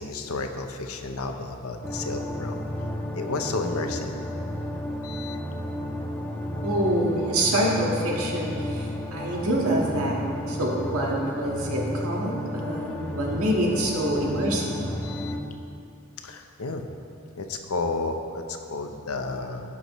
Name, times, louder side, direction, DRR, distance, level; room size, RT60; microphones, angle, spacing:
voice 1, 0.0-2.7 3.2-4.2 5.0-5.4 15.0-15.3 16.2-16.8 17.4-19.6, left 3 dB, 80° left, 5 dB, 0.8 m, -32 dB
sound 1, 1.8-15.4, equal, 5° left, 0.6 m, -32 dB
voice 2, 6.6-10.2 10.5-14.7, right 1 dB, 80° right, -2 dB, 1.6 m, -26 dB
16.0 x 6.2 x 3.1 m, 2.6 s
head